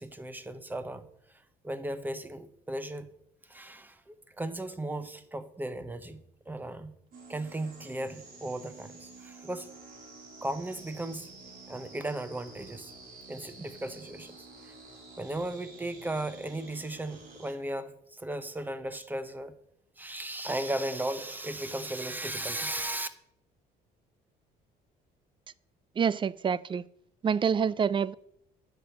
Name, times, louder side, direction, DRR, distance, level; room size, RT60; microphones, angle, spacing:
voice 1, 0.0-3.1 3.4-6.2 6.5-7.0 7.3-9.7 10.4-11.3 11.7-12.9 13.3-14.7 15.2-19.6 20.0-23.1, right 1 dB, 10° right, 0.9 m, -36 dB
sound 1, 7.1-17.5, right 3 dB, 60° right, 3.7 m, -50 dB
voice 2, 26.0-26.8 27.2-28.1, right 7 dB, 30° right, 0.4 m, -27 dB
10.5 x 5.2 x 7.8 m
cardioid pair, 110°, 17 cm